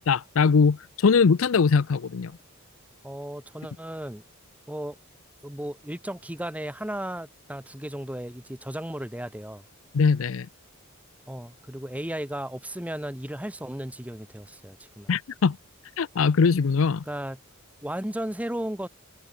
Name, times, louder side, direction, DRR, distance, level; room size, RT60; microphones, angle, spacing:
voice 1, 0.0-2.3 9.9-10.5 15.1-15.6 16.0-17.0, left 5 dB, 65° left, 0.5 m, -21 dB
voice 2, 3.0-4.2 4.7-5.0 5.4-9.6 11.3-15.1 17.1-17.4 17.8-18.9, right 1 dB, 5° right, 1.3 m, -35 dB
head